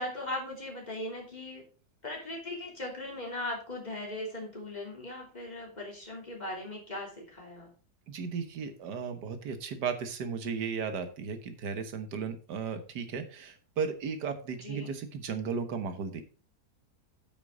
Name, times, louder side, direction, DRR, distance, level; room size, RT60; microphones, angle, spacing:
voice 1, 0.0-1.7 2.0-7.7 14.6-14.9, left 1 dB, 25° left, -1 dB, 3.2 m, -39 dB
voice 2, 8.1-16.2, right 6 dB, 80° right, 9 dB, 1.8 m, -35 dB
8.9 x 6.0 x 5.1 m, 0.38 s
omnidirectional pair, 1.8 m